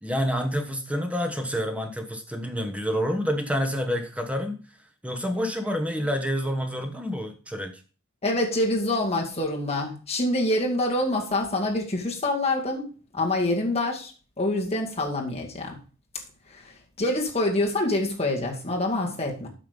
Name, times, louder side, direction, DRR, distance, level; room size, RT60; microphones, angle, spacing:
voice 1, 0.0-4.6 5.0-7.8, equal, 5° right, 1.1 m, -28 dB
voice 2, 8.2-14.1 14.4-15.8 16.5-16.7 17.0-19.5, left 1 dB, 30° left, 2.2 m, -26 dB
8.9 x 5.7 x 5.2 m
head